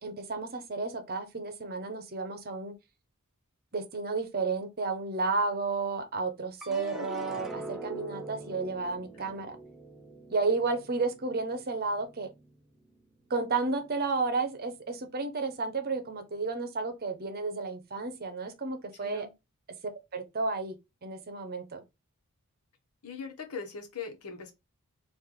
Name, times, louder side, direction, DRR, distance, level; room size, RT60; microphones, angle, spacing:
voice 1, 0.0-2.7 3.7-9.6 10.3-12.3 13.3-19.3 20.1-20.8 21.0-21.8, right 3 dB, 45° right, 0.8 m, -32 dB
sound 1, 6.6-13.0 13.5-14.2, right 2 dB, ahead, 0.5 m, -44 dB
voice 2, 6.7-7.1 9.1-9.3 19.0-19.3 23.0-24.5, left 5 dB, 85° left, 1.1 m, -41 dB
3.3 x 2.5 x 3.7 m
head